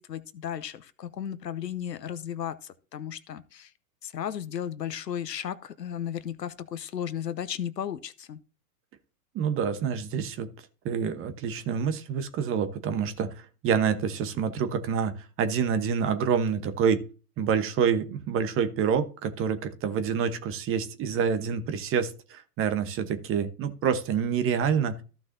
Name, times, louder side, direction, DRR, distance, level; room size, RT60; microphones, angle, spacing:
voice 1, 0.0-3.7 4.0-8.4, left 9 dB, 85° left, 0.9 m, -35 dB
voice 2, 9.3-10.5 10.8-13.3 13.6-17.0 17.4-25.0, right 7 dB, 25° right, 1.1 m, -27 dB
14.5 x 5.9 x 2.7 m
hypercardioid pair, 105°, 48 cm